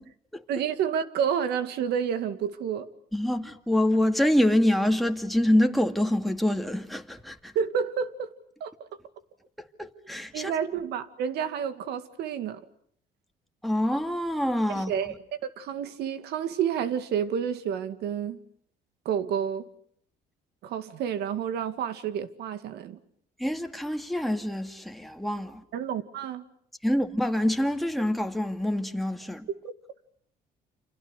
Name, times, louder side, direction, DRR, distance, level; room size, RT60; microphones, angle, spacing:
voice 1, 0.5-2.9 7.6-8.3 8.6-8.7 10.3-12.6 14.7-15.1 15.6-18.4 19.1-19.7 20.6-23.0 25.7-26.4 29.6-29.7, right 8 dB, 75° right, 2.1 m, -29 dB
voice 2, 3.1-7.5 9.8-10.5 13.6-14.9 23.4-25.6 26.8-29.5, left 1 dB, ahead, 2.1 m, -26 dB
29.5 x 27.5 x 6.6 m
cardioid pair, 110°, 17 cm